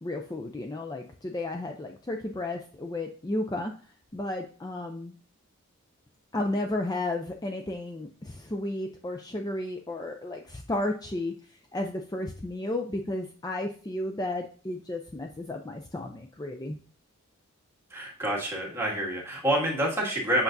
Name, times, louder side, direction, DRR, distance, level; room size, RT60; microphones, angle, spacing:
voice 1, 0.0-3.7 4.1-5.2 6.3-16.8, left 1 dB, 15° left, 3 dB, 0.4 m, -33 dB
voice 2, 17.9-20.4, right 1 dB, 10° right, -4 dB, 2.0 m, -27 dB
8.1 x 5.8 x 2.6 m, 0.42 s
head